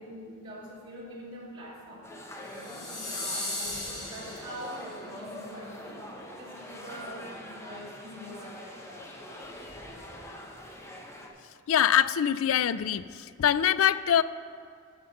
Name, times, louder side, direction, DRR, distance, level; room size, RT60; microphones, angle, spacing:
voice 1, 0.0-2.1 2.5-10.3, equal, 25° right, -8 dB, 2.8 m, -44 dB
sound 1, 2.0-11.3, left 1 dB, 15° left, 0.8 m, -44 dB
sound 2, 2.5-5.0, left 2 dB, 35° left, 2.1 m, -37 dB
voice 2, 11.7-13.0 13.4-14.2, left 9 dB, 75° left, 16 dB, 0.3 m, -23 dB
13.0 x 5.1 x 5.7 m, 2.2 s
head